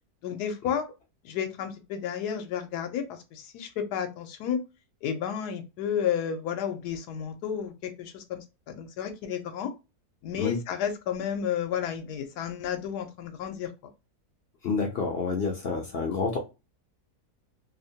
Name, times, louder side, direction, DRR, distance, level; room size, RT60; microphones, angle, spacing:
voice 1, 0.2-0.8 1.2-4.6 5.0-9.7 10.2-13.7, left 8 dB, 90° left, 7 dB, 1.2 m, -32 dB
voice 2, 14.6-16.4, left 4 dB, 65° left, 2 dB, 0.6 m, -28 dB
2.8 x 2.1 x 2.7 m, 0.27 s
omnidirectional pair, 1.7 m